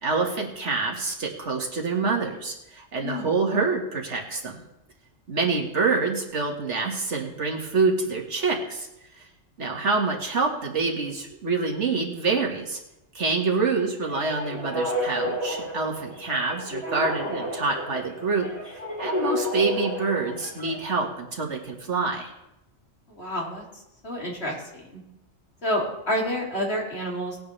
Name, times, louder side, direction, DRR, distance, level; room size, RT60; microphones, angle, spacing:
voice 1, 0.0-4.6 5.3-8.9 9.1-9.3 9.6-12.8 13.1-22.3, right 4 dB, 70° right, 0 dB, 2.0 m, -26 dB
voice 2, 3.0-3.3 23.1-23.6 24.0-25.0 25.6-27.4, equal, 55° left, -3 dB, 3.1 m, -29 dB
sound 1, 14.0-20.9, equal, 20° right, 4.4 m, -31 dB
19.0 x 9.3 x 3.3 m, 0.88 s
omnidirectional pair, 1.2 m